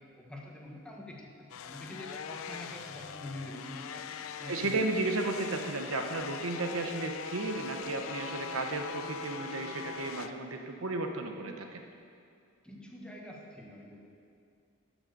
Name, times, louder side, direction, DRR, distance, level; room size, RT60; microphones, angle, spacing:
voice 1, 0.0-4.1 4.4-4.9 12.6-14.0, left 1 dB, 5° left, -2 dB, 1.3 m, -45 dB
sound 1, 1.5-10.3, left 7 dB, 65° left, 0.4 m, -42 dB
voice 2, 4.4-11.8, right 2 dB, 70° right, 4 dB, 0.9 m, -34 dB
11.5 x 6.3 x 6.7 m, 2.3 s
head